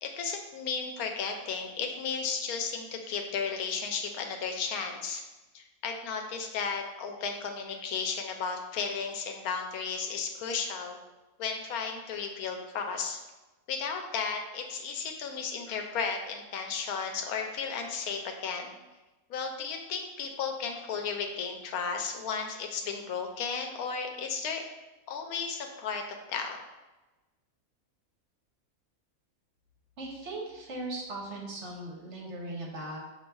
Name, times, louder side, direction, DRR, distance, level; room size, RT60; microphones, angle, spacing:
voice 1, 0.0-5.2 5.5-11.0 11.4-13.2 13.7-18.7 19.3-24.6 25.1-26.6, left 5 dB, 85° left, 4 dB, 1.1 m, -34 dB
voice 2, 30.0-33.0, right 2 dB, 60° right, -1 dB, 1.0 m, -38 dB
6.4 x 2.6 x 2.3 m, 1.1 s
omnidirectional pair, 1.5 m